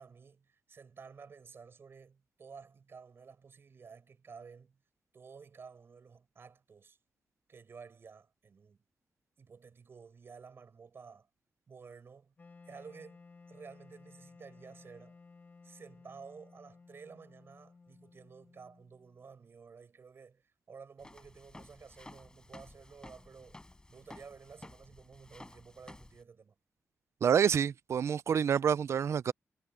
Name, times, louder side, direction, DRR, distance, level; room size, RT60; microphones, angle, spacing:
voice 1, 0.0-4.8 5.1-7.0 7.5-8.8 9.4-11.3 11.7-12.3 12.7-13.2 13.5-15.2 15.6-20.4 20.7-23.6 23.9-26.5, right 5 dB, 55° right, 4.9 m, -53 dB
Wind instrument woodwind instrument, 12.4-19.3, left 4 dB, 35° left, 1.8 m, -57 dB
Walk footsteps, 21.0-26.2, left 2 dB, 15° left, 4.9 m, -53 dB
voice 2, 27.2-29.3, right 8 dB, 70° right, 0.4 m, -27 dB
wide cardioid pair, 135°, 5 cm